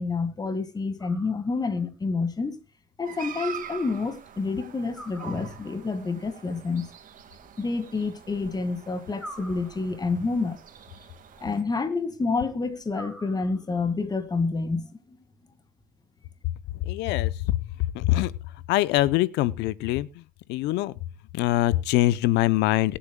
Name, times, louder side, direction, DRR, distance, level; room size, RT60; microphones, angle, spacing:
voice 1, 0.0-2.6 3.0-6.9 7.6-10.6 11.4-15.2, left 4 dB, 25° left, 2.0 m, -28 dB
sound 1, 1.0-1.8 4.9-5.9 9.2-10.2 12.9-13.9, equal, ahead, 3.2 m, -46 dB
sound 2, 3.0-11.6, right 8 dB, 50° right, 2.0 m, -44 dB
voice 2, 16.9-17.6 17.9-18.3 18.7-20.1 20.5-20.9 21.3-23.0, left 16 dB, 90° left, 0.6 m, -23 dB
23.0 x 8.7 x 2.2 m
cardioid pair, 110°, 17 cm